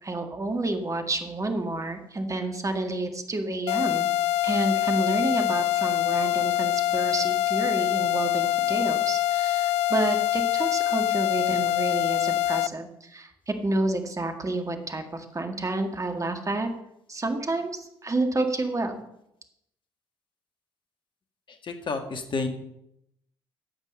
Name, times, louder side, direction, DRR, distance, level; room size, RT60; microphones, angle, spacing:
voice 1, 0.0-4.1 4.4-16.7 17.1-19.0, right 2 dB, 25° right, 6 dB, 1.9 m, -29 dB
sound 1, 3.7-12.7, left 13 dB, 60° left, 0.4 m, -25 dB
voice 2, 21.5-22.5, left 4 dB, 40° left, 6 dB, 1.8 m, -31 dB
12.5 x 8.1 x 5.4 m, 0.79 s
figure-of-eight pair, 45°, 12 cm